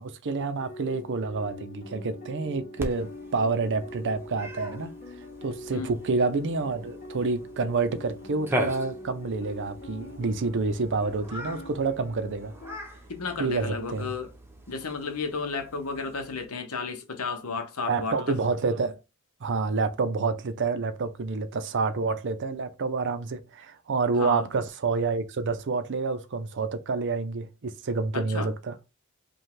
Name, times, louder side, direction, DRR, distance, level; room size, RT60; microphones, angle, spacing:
voice 1, 0.0-4.9 5.4-12.5 13.4-14.1 17.9-19.0 19.4-28.7, right 4 dB, 55° right, 0.6 m, -28 dB
sound 1, 0.5-12.8, left 1 dB, 40° left, 2.1 m, -43 dB
Cat, 2.8-16.5, equal, 10° right, 0.8 m, -40 dB
voice 2, 13.1-14.3 14.7-18.4 24.2-24.5 28.1-28.5, left 4 dB, 75° left, 0.9 m, -33 dB
5.2 x 2.3 x 3.7 m
head